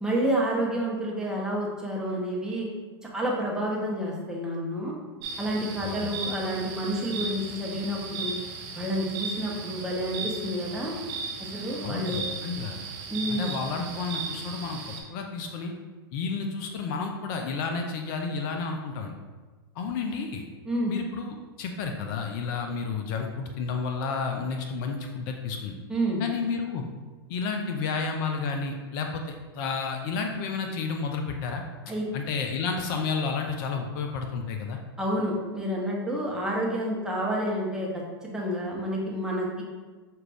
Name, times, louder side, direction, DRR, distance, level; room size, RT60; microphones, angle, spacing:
voice 1, 0.0-2.7 3.1-4.9 5.4-8.4 8.7-10.9 11.5-12.2 13.1-13.5 20.6-20.9 25.9-26.2 31.9-32.0 35.0-39.6, equal, 5° right, -4 dB, 1.0 m, -29 dB
sound 1, 5.2-15.0, right 4 dB, 45° right, 0.9 m, -36 dB
voice 2, 5.8-6.1 11.8-12.8 13.3-14.8 15.1-15.7 16.1-19.2 19.8-20.4 20.9-25.7 26.2-26.8 27.3-31.6 32.1-34.8, left 5 dB, 50° left, 3 dB, 0.5 m, -31 dB
5.8 x 2.5 x 3.4 m, 1.3 s
hypercardioid pair, 110°, 13 cm